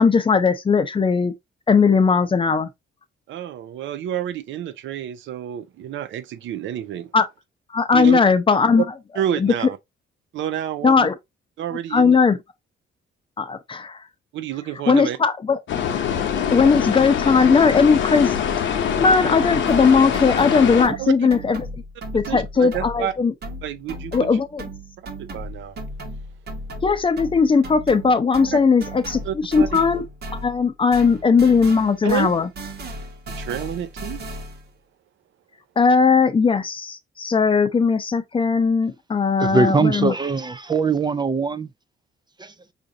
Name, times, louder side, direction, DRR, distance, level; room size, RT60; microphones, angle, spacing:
voice 1, 0.0-1.3 1.7-2.7 7.1-7.3 7.7-8.8 9.4-9.5 10.8-11.1 11.9-12.4 13.4-14.0 14.9-15.6 16.5-18.4 18.7-21.7 22.1-23.3 24.1-24.6 26.8-30.0 30.3-32.5 35.8-40.1, left 5 dB, 25° left, 0.6 m, -18 dB
voice 2, 3.3-7.1 7.9-8.2 8.8-8.9 9.2-9.8 10.3-11.1 11.6-12.2 14.3-15.2 20.8-21.3 22.1-23.1 23.6-24.4 25.2-25.8 28.5-28.6 29.2-29.8 32.0-32.3 33.3-34.2, right 11 dB, 75° right, 0.6 m, -29 dB
sound 1, 15.7-20.9, left 8 dB, 70° left, 0.8 m, -24 dB
sound 2, 19.7-23.1 23.4-30.7 30.9-34.7, right 1 dB, 55° right, 1.1 m, -36 dB
voice 3, 39.4-41.7 42.4-42.5, right 4 dB, 20° right, 0.4 m, -21 dB
5.1 x 2.6 x 2.6 m
cardioid pair, 90°, 20 cm